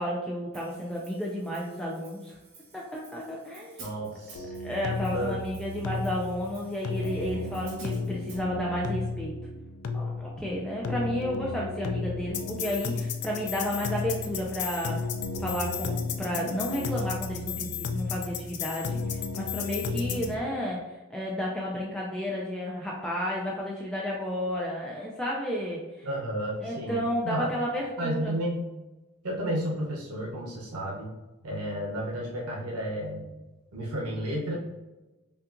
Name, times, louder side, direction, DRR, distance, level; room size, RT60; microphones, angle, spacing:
voice 1, 0.0-2.4 2.7-3.9 4.6-9.4 9.9-15.1 15.4-26.1 26.6-28.4, equal, 5° left, -4 dB, 0.4 m, -32 dB
Hi-hat, 0.5-8.4, right 3 dB, 55° right, 1.4 m, -53 dB
voice 2, 3.8-4.5 5.1-5.4 26.0-27.5 28.0-28.7 29.2-31.1 31.4-33.3 33.7-34.6, right 1 dB, 85° right, -2 dB, 0.8 m, -32 dB
sound 1, 4.3-20.3, left 4 dB, 85° left, 0.4 m, -33 dB
5.5 x 2.4 x 2.5 m, 1.1 s
head